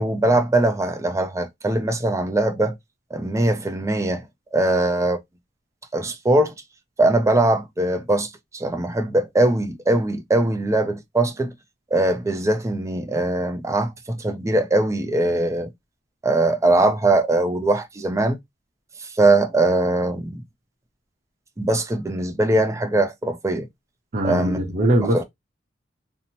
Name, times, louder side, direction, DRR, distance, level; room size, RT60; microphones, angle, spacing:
voice 1, 0.0-2.7 3.1-4.2 4.5-5.2 5.9-6.5 7.0-11.5 11.9-15.7 16.2-18.4 19.2-20.4 21.6-23.7 24.2-24.6 25.1-25.2, right 2 dB, 15° right, 0.4 m, -21 dB
voice 2, 24.1-25.2, right 1 dB, 45° right, 0.7 m, -21 dB
2.7 x 2.0 x 2.8 m
head